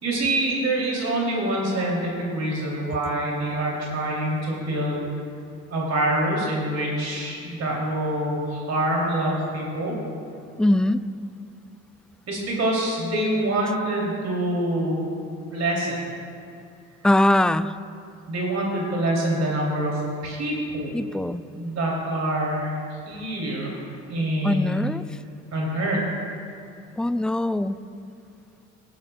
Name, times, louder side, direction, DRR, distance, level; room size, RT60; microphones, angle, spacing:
voice 1, 0.0-5.1 5.7-9.9 12.3-15.1 15.5-16.0 18.3-21.0 21.5-22.8 23.0-23.8 24.1-24.7 25.5-26.0, right 1 dB, 55° right, -3 dB, 2.9 m, -25 dB
voice 2, 10.6-11.1 17.0-17.7 20.9-21.4 24.4-25.2 27.0-27.8, left 1 dB, 5° left, 13 dB, 0.3 m, -22 dB
17.0 x 12.0 x 2.3 m, 2.5 s
supercardioid pair, 65°, 32 cm